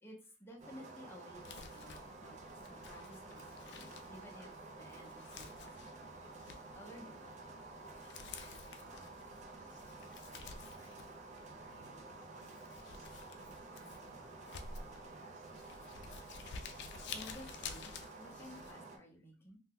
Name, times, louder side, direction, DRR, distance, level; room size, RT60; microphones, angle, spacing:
voice 1, 0.0-2.4 2.7-6.1 6.7-7.3 17.1-17.9 18.2-19.6, left 1 dB, 10° left, -1 dB, 0.6 m, -54 dB
sound 1, 0.6-19.0, right 3 dB, 40° right, 0.5 m, -51 dB
Crumpling crinkling, 1.3-18.7, left 5 dB, 60° left, 0.3 m, -52 dB
voice 2, 8.8-9.2 9.6-11.0 11.5-15.6, right 1 dB, 60° right, -3 dB, 0.9 m, -63 dB
2.8 x 2.1 x 3.5 m, 0.36 s
head